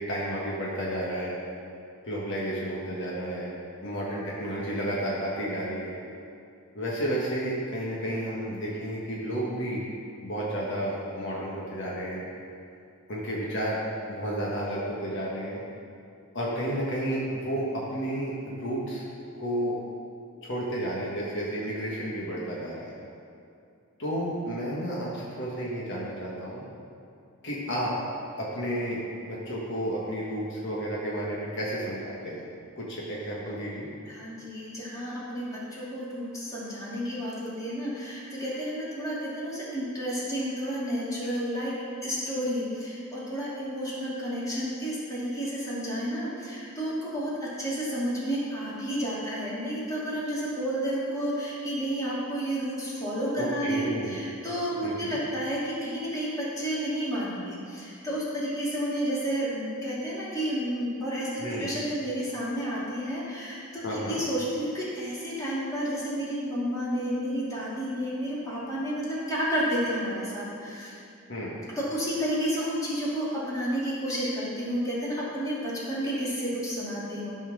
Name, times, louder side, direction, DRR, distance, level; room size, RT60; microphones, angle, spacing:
voice 1, 0.1-1.4 2.0-3.5 3.8-6.0 6.7-9.8 10.2-12.2 13.1-13.8 14.1-15.6 16.3-19.0 19.4-19.8 20.4-22.9 24.0-26.6 27.4-27.9 28.4-32.4 32.8-33.9 53.4-54.2 54.8-55.2 61.4-61.7 63.8-64.2 71.3-71.6, right 1 dB, 60° left, -5 dB, 1.6 m, -31 dB
voice 2, 34.1-41.7 42.0-70.9 71.8-77.4, equal, 15° left, -9 dB, 2.6 m, -31 dB
13.0 x 4.6 x 6.1 m, 2.6 s
head